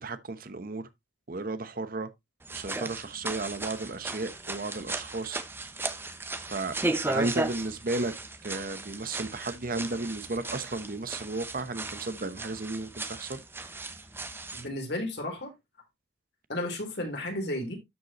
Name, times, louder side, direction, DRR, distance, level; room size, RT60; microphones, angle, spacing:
voice 1, 0.0-0.9 1.3-2.1 2.5-5.4 6.4-6.7 7.1-8.1 8.4-13.4, right 2 dB, 50° right, 0.9 m, -34 dB
sound 1, 2.4-14.7, right 2 dB, 10° right, 0.8 m, -36 dB
voice 2, 14.5-15.5 16.5-17.8, left 1 dB, 60° left, 3.7 m, -33 dB
12.5 x 5.4 x 3.0 m
head